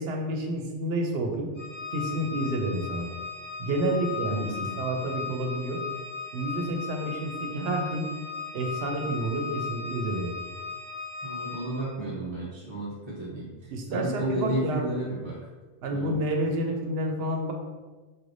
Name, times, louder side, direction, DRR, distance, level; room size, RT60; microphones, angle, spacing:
voice 1, 0.0-1.5 1.9-3.1 3.6-5.8 6.3-8.1 8.5-10.3 13.7-14.9 15.8-17.5, right 1 dB, 65° right, 2 dB, 0.8 m, -29 dB
Organ, 1.6-12.0, left 5 dB, 50° left, 0.7 m, -37 dB
voice 2, 4.3-4.8 11.2-15.4 15.9-16.2, right 1 dB, 30° right, -7 dB, 0.6 m, -33 dB
4.3 x 3.2 x 2.6 m, 1.3 s
omnidirectional pair, 1.2 m